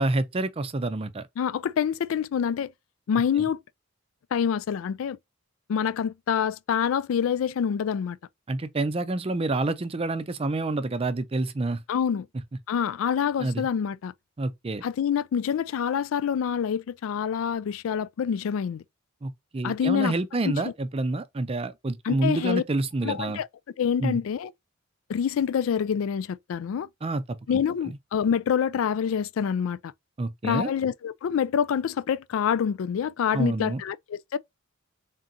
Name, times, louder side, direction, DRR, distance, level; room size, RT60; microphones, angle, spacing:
voice 1, 0.0-1.3 8.5-11.8 13.4-13.7 14.4-14.8 19.2-23.4 24.0-24.2 27.0-28.0 30.2-30.7 33.3-33.8, right 2 dB, 30° right, 0.4 m, -28 dB
voice 2, 1.4-2.7 3.1-3.6 4.3-5.2 5.7-8.2 11.9-12.3 12.7-14.1 14.8-18.8 19.6-20.1 20.4-20.5 22.1-22.6 23.0-23.5 23.8-24.5 25.1-26.9 27.5-29.9 30.4-34.4, left 7 dB, 75° left, 0.3 m, -26 dB
3.8 x 3.7 x 2.7 m
head